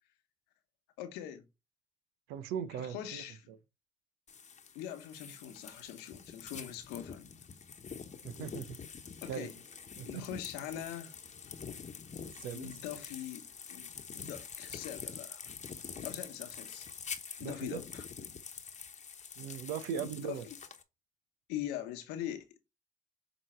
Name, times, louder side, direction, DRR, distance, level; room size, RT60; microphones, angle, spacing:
voice 1, 1.0-1.4 2.7-3.5 4.7-7.3 9.2-9.5 10.0-11.1 12.5-15.5 16.0-16.9 17.4-18.0 20.0-20.5 21.5-22.6, left 11 dB, 85° left, 1.0 m, -42 dB
voice 2, 2.3-3.6 8.2-8.8 9.3-9.5 10.0-10.3 12.3-12.8 17.4-17.8 19.4-20.5, right 8 dB, 85° right, 0.6 m, -39 dB
sound 1, 4.3-20.8, left 6 dB, 45° left, 1.0 m, -46 dB
7.7 x 3.0 x 4.4 m
hypercardioid pair, 50°, 16 cm